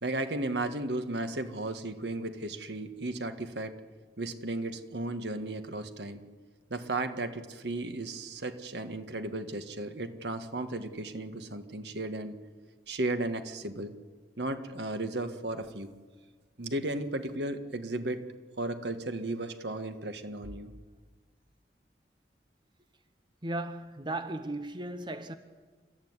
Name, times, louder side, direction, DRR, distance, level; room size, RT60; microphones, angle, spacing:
voice 1, 0.0-3.8 4.2-6.3 6.7-12.4 12.9-14.0 14.4-15.9 16.6-18.2 18.6-20.7, right 2 dB, 75° right, 1.8 m, -35 dB
voice 2, 23.4-25.3, right 2 dB, 25° right, 1.0 m, -36 dB
29.5 x 14.0 x 9.8 m
head